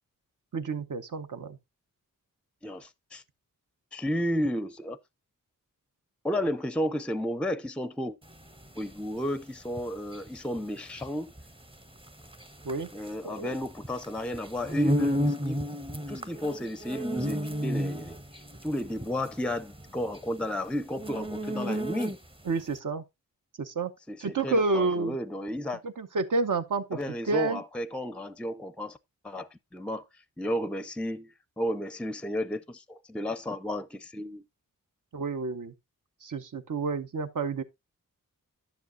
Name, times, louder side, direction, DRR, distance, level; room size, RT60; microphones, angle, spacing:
voice 1, 0.5-1.6 12.6-12.9 13.2-13.6 22.5-23.0 23.6-23.9 24.2-25.2 25.8-27.0 27.2-27.6 35.1-35.7 36.2-37.6, right 3 dB, 65° right, 0.9 m, -29 dB
voice 2, 2.6-3.2 3.9-5.0 6.2-8.2 8.7-11.3 12.9-15.6 16.1-18.2 18.6-22.2 24.1-25.8 26.9-29.0 29.2-30.0 30.4-34.4, left 1 dB, 5° left, 0.5 m, -32 dB
sound 1, 8.3-22.5, equal, 15° right, 0.8 m, -33 dB
10.5 x 7.2 x 2.6 m
wide cardioid pair, 75°, 33 cm